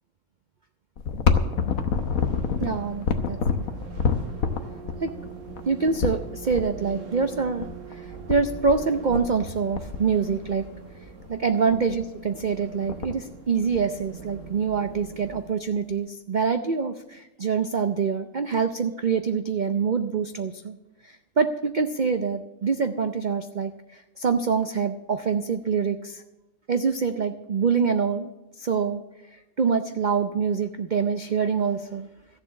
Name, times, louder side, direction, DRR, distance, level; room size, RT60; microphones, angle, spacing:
sound 1, 1.0-6.6 7.6-7.7 7.9-8.0 8.3-8.8 9.1-9.5 9.7-10.6 11.2-11.3 11.7-12.0 12.4-12.5 12.6-13.2 13.7-14.5 14.9-15.0 15.9-16.0, left 6 dB, 65° left, 1.3 m, -26 dB
sound 2, 1.6-15.4, right 5 dB, 55° right, 1.6 m, -43 dB
voice 1, 2.6-3.6 4.5-10.7 11.3-20.8 21.0-26.2 26.7-28.3 28.6-29.0 29.3-32.1, right 5 dB, 85° right, 8 dB, 0.4 m, -26 dB
14.5 x 7.4 x 7.5 m, 1.0 s
omnidirectional pair, 1.6 m